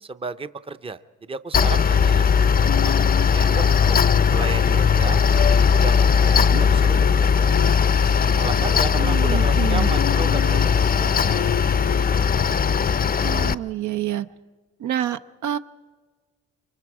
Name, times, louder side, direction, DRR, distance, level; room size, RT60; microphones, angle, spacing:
voice 1, 0.0-2.3 3.3-4.0 4.3-7.5 8.4-11.5, right 4 dB, 20° right, 11 dB, 0.6 m, -34 dB
Mechanical fan, 1.5-13.5, left 6 dB, 30° left, 0.5 m, -18 dB
sound 1, 2.7-12.9, left 12 dB, 90° left, 0.6 m, -35 dB
voice 2, 9.0-9.9 13.2-14.3 14.8-15.6, right 11 dB, 70° right, 11 dB, 0.6 m, -28 dB
26.0 x 24.0 x 4.8 m, 1.4 s
cardioid pair, 90°, 30 cm